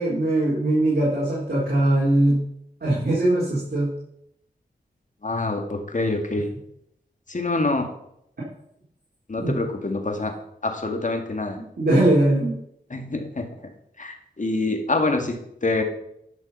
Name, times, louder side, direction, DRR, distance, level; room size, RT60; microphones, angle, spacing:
voice 1, 0.0-2.4 2.8-3.9 9.4-9.6 11.8-12.5, right 1 dB, 60° right, -6 dB, 4.1 m, -21 dB
voice 2, 5.2-6.5 7.3-7.9 9.3-10.3 10.6-11.6 12.9-13.5 14.0-15.8, left 2 dB, 45° left, 4 dB, 2.1 m, -26 dB
11.5 x 6.3 x 5.6 m, 0.74 s
cardioid pair, 45°, 18 cm